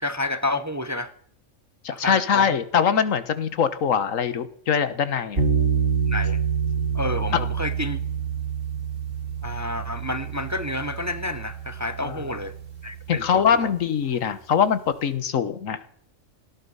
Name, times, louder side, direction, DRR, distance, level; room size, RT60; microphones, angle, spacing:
voice 1, 0.0-1.1 1.9-2.6 5.1-5.2 6.1-6.4 6.9-8.0 9.4-12.5 12.8-13.7, left 1 dB, 15° right, 12 dB, 0.7 m, -30 dB
voice 2, 1.8-5.4 7.3-7.5 12.0-12.3 13.1-15.8, left 7 dB, 85° left, 13 dB, 1.5 m, -23 dB
sound 1, 5.4-13.5, right 6 dB, 75° right, 3.3 m, -27 dB
18.0 x 13.0 x 5.5 m, 0.64 s
omnidirectional pair, 1.3 m